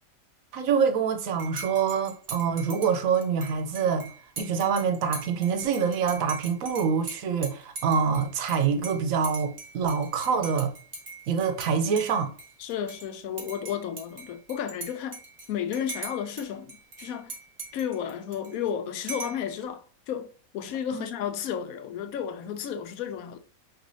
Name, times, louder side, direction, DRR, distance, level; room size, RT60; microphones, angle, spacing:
voice 1, 0.5-4.1 4.4-10.7 11.3-12.3 20.9-21.0, right 6 dB, 80° right, 1.1 m, -26 dB
Dishes pots and pans / Cutlery silverware / Chink clink, 1.4-11.7 12.0-13.1 13.4-16.4 16.7-18.7 19.1-19.5, right 3 dB, 40° right, 1.1 m, -41 dB
voice 2, 12.6-15.2 15.5-17.3 17.7-20.3 20.5-23.4, left 8 dB, 90° left, 1.1 m, -32 dB
6.0 x 2.9 x 2.7 m
omnidirectional pair, 1.4 m